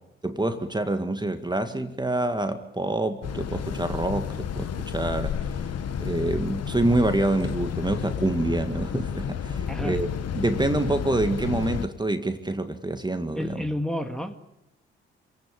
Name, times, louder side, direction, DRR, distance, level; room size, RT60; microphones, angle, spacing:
voice 1, 0.2-5.3 6.0-10.1 10.4-13.6, right 2 dB, 15° right, 8 dB, 1.9 m, -26 dB
sound 1, 3.2-11.9, left 7 dB, 55° left, 1.5 m, -31 dB
voice 2, 9.7-10.0 13.4-14.6, left 1 dB, ahead, 5 dB, 2.0 m, -31 dB
27.5 x 17.5 x 8.4 m, 0.90 s
hypercardioid pair, 45°, 31 cm